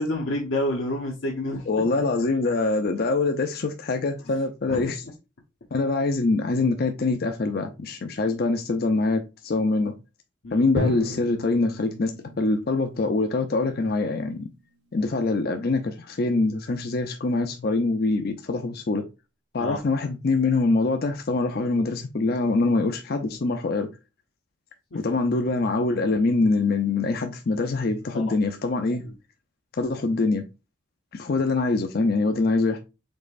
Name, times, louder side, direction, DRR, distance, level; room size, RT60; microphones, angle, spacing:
voice 1, 0.0-1.7 4.3-4.4 4.7-4.9 10.4-10.6 19.6-19.8 24.9-25.0 28.1-28.4 29.0-29.1, left 1 dB, 85° left, 1.1 m, -29 dB
voice 2, 1.7-5.0 5.7-9.9 10.5-12.1 12.4-14.5 14.9-19.0 19.5-23.9 24.9-29.0 29.8-30.4 31.1-32.8, left 3 dB, 50° left, 0.5 m, -24 dB
Drum, 10.8-14.8, left 1 dB, 60° right, 1.1 m, -34 dB
5.3 x 3.9 x 2.5 m
head